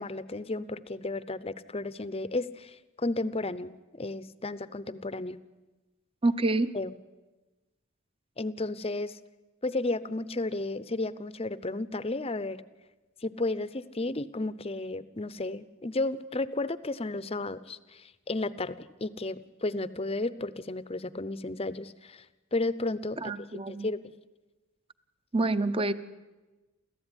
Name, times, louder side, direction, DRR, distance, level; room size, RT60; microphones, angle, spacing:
voice 1, 0.0-5.4 6.7-6.9 8.4-9.2 9.6-12.6 13.2-22.2 22.5-23.3 23.8-24.1, left 2 dB, 25° left, 16 dB, 0.7 m, -33 dB
voice 2, 6.2-6.7 23.2-23.9 25.3-25.9, right 2 dB, 25° right, 13 dB, 0.8 m, -27 dB
28.5 x 14.5 x 9.9 m, 1.2 s
head